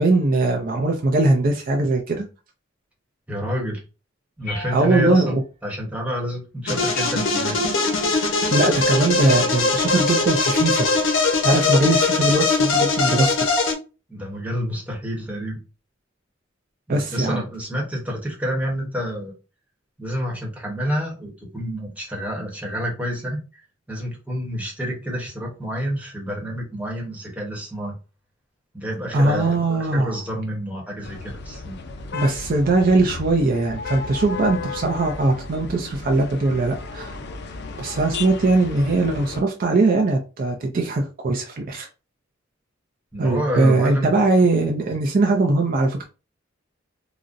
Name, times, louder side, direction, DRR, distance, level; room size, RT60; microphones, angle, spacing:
voice 1, 0.0-2.2 4.7-5.3 8.5-10.9 11.4-13.3 16.9-17.4 29.1-30.1 32.1-37.2 37.8-41.9 43.2-46.0, right 2 dB, 50° right, 2 dB, 0.5 m, -20 dB
voice 2, 3.3-3.8 4.4-7.7 14.1-15.6 16.9-19.3 20.0-27.9 28.7-31.8 43.1-44.1, equal, 10° right, -1 dB, 1.0 m, -28 dB
sound 1, 4.4-5.3 6.9-7.8 9.3-9.9 11.8-12.2, left 2 dB, 40° left, 1.6 m, -37 dB
sound 2, 6.7-13.7, left 3 dB, 85° left, 0.8 m, -21 dB
sound 3, 31.0-39.4, left 4 dB, 60° left, 0.5 m, -34 dB
3.8 x 2.1 x 2.5 m, 0.31 s
head